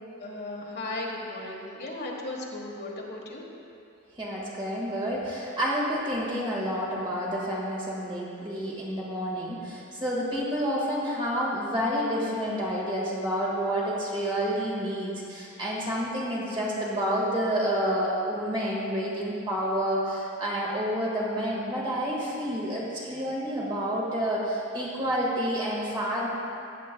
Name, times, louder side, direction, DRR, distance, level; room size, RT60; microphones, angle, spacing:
voice 1, 0.2-3.5, left 2 dB, 50° left, -2 dB, 1.3 m, -36 dB
voice 2, 4.2-26.3, equal, 25° right, -5 dB, 1.7 m, -29 dB
15.0 x 7.6 x 2.3 m, 2.7 s
head